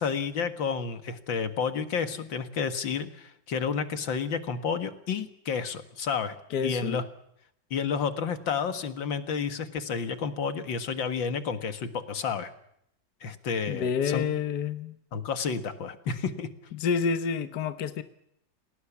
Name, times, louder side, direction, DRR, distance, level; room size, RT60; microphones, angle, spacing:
voice 1, 0.0-6.4 6.6-7.0 7.7-12.5 13.2-14.3 15.1-16.5, left 6 dB, 85° left, 10 dB, 2.4 m, -30 dB
voice 2, 6.5-7.0 13.7-15.0 16.7-18.0, left 6 dB, 65° left, 10 dB, 1.7 m, -28 dB
29.0 x 19.0 x 7.2 m, 0.75 s
omnidirectional pair, 2.0 m